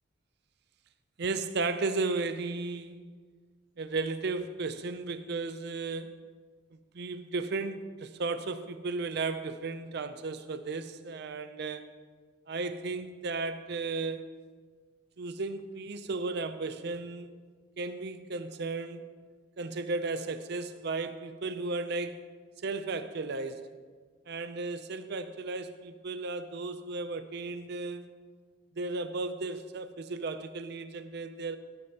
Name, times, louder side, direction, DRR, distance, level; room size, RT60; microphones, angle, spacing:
voice 1, 1.2-3.0 3.8-6.2 6.9-11.9 12.5-14.3 15.2-17.3 17.8-19.0 19.6-22.2 22.6-23.7 24.3-28.1 28.8-31.6, right 3 dB, 55° right, 10 dB, 0.5 m, -34 dB
16.5 x 9.6 x 2.9 m, 1.5 s
head